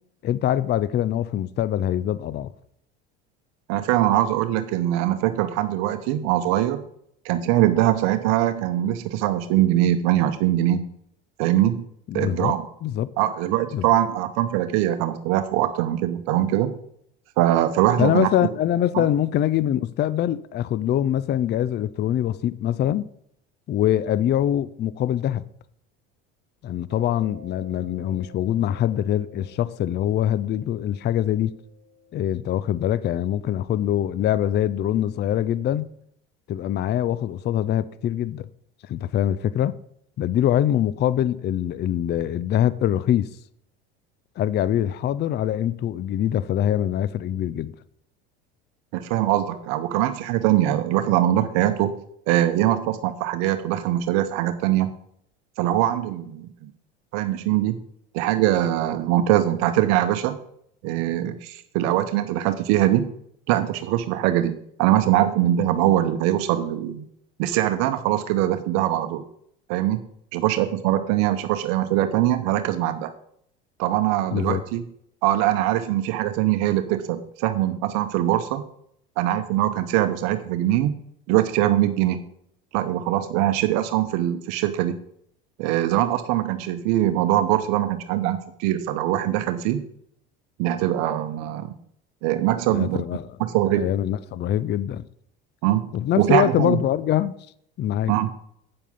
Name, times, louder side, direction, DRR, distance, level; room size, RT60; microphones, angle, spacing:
voice 1, 0.2-2.5 12.1-12.5 12.8-13.1 13.7-13.9 18.0-23.1 23.7-25.4 26.6-31.6 32.1-35.9 36.5-38.5 38.8-39.7 40.2-43.3 44.4-47.7 74.3-74.6 92.7-93.3 93.8-95.1 95.9-97.3 97.8-98.1, left 11 dB, 35° left, 0.5 m, -23 dB
voice 2, 3.7-6.8 7.2-10.8 11.4-11.8 12.1-12.6 13.2-16.7 17.4-18.3 18.9-19.1 48.9-51.9 52.3-54.9 55.6-56.7 57.1-57.8 58.1-60.4 60.8-63.1 63.5-67.1 67.4-69.2 69.7-70.0 70.3-73.1 73.8-74.8 75.2-78.6 79.2-80.9 81.3-82.2 82.7-85.0 85.6-89.8 90.6-91.7 92.2-93.0 93.4-93.9 95.6-96.8 98.1-98.3, right 13 dB, 70° right, 0.9 m, -22 dB
Mallet percussion, 26.9-33.3, left 2 dB, 30° right, 3.6 m, -50 dB
8.7 x 7.3 x 5.4 m
supercardioid pair, 90°, 29 cm